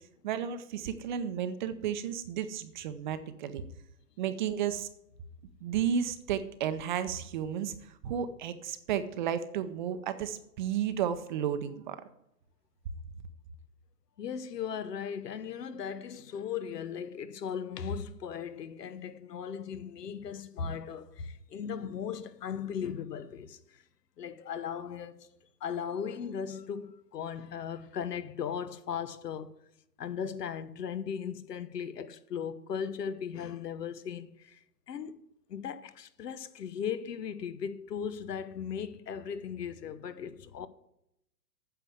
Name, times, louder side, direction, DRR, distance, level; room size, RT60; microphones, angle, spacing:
voice 1, 0.2-3.6 4.2-4.9 5.6-7.7 8.0-12.0, right 9 dB, 30° right, 0.7 m, -33 dB
voice 2, 14.2-23.8 24.2-25.3 25.6-29.5 30.0-35.2 35.5-40.7, left 7 dB, 75° left, 1.1 m, -37 dB
9.4 x 6.7 x 8.0 m
hypercardioid pair, 140°, 49 cm